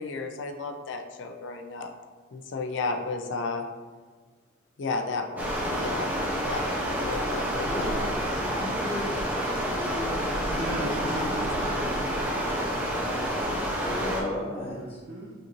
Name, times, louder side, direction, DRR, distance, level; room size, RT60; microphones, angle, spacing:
voice 1, 0.0-1.9 2.3-3.7 4.8-6.1 6.5-6.7 7.0-7.9 11.1-11.3, left 3 dB, 65° left, 4 dB, 0.4 m, -33 dB
Stream, 5.4-14.2, equal, 10° right, 0.6 m, -29 dB
voice 2, 8.3-9.2 9.5-11.4 13.8-15.0, left 1 dB, 30° left, -6 dB, 1.1 m, -36 dB
voice 3, 10.1-12.2 14.5-15.3, equal, 70° right, -8 dB, 0.8 m, -37 dB
5.1 x 2.6 x 3.0 m, 1.5 s
head